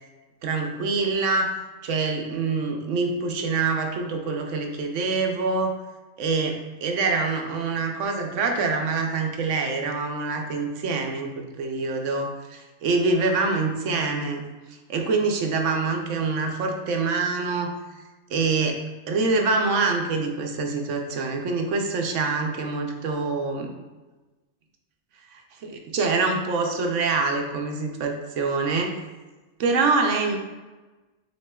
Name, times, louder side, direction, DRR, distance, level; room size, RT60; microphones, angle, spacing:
voice 1, 0.4-1.5 1.8-5.7 6.2-14.4 14.9-17.7 18.3-18.8 19.1-23.7 25.3-28.9 29.6-30.4, right 4 dB, 70° right, 3 dB, 0.9 m, -25 dB
7.2 x 2.9 x 2.2 m, 1.2 s
omnidirectional pair, 1.4 m